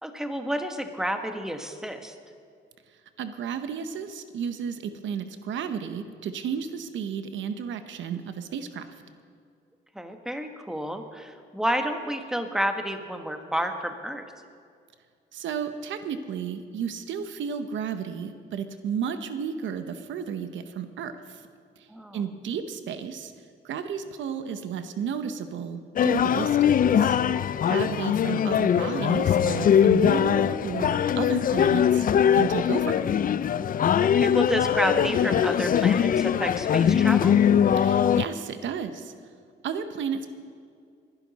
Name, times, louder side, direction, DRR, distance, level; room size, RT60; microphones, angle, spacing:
voice 1, 0.0-2.1 9.9-14.2 21.9-22.2 27.5-27.9 34.0-37.4, right 1 dB, 5° right, 6 dB, 1.3 m, -30 dB
voice 2, 3.2-8.8 15.3-21.4 21.8-21.9 22.1-23.3 23.6-27.2 27.7-32.1 32.3-33.1 37.8-39.1 39.6-40.3, right 7 dB, 70° right, 9 dB, 0.9 m, -33 dB
sound 1, 26.0-38.3, left 9 dB, 45° left, 0.4 m, -22 dB
21.5 x 11.0 x 4.1 m, 2.2 s
cardioid pair, 90°, 20 cm